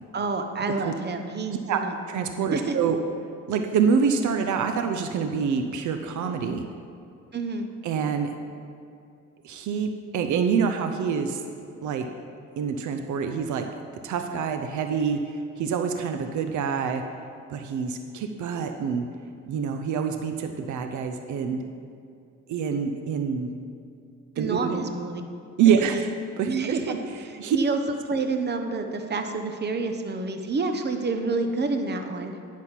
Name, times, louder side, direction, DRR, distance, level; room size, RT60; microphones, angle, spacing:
voice 1, 0.1-2.0 2.5-2.8 7.3-7.7 24.4-25.2 25.8-26.0 26.5-27.0 27.2-32.3, right 3 dB, 35° right, 6 dB, 1.0 m, -28 dB
voice 2, 2.1-3.0 3.5-6.6 7.8-8.3 9.4-11.4 11.8-12.1 12.6-13.7 14.0-17.0 17.5-19.0 19.5-21.6 22.5-23.5 24.4-24.9 25.6-26.1 26.4-27.0 27.4-27.6, right 6 dB, 75° right, 6 dB, 0.7 m, -26 dB
10.0 x 6.2 x 5.7 m, 2.5 s
cardioid pair, 90°, 30 cm